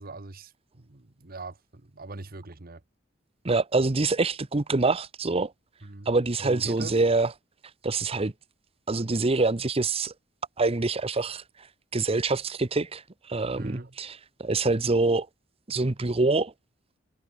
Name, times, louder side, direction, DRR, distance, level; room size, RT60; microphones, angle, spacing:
voice 1, 0.0-2.8 5.8-6.1 6.4-7.0 13.5-13.9, right 2 dB, 50° right, 1.3 m, -41 dB
voice 2, 3.4-5.5 6.1-7.3 7.8-8.3 8.9-10.1 10.6-11.4 11.9-13.0 13.3-15.3 15.7-16.5, right 3 dB, 30° right, 0.8 m, -25 dB
head